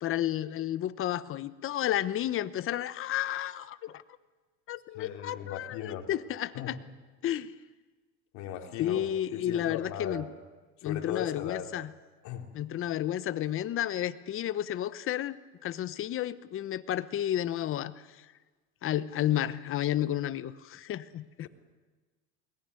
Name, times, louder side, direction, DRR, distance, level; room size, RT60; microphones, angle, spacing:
voice 1, 0.0-4.0 4.7-6.8 7.2-7.5 8.8-10.3 10.8-11.9 12.5-17.9 18.8-21.5, left 12 dB, 45° left, 1.0 m, -31 dB
voice 2, 4.9-6.1 6.5-6.7 8.3-9.0 9.3-10.2 10.8-11.7 12.2-12.5, left 9 dB, 70° left, 3.6 m, -38 dB
21.5 x 18.5 x 9.6 m
supercardioid pair, 115°, 29 cm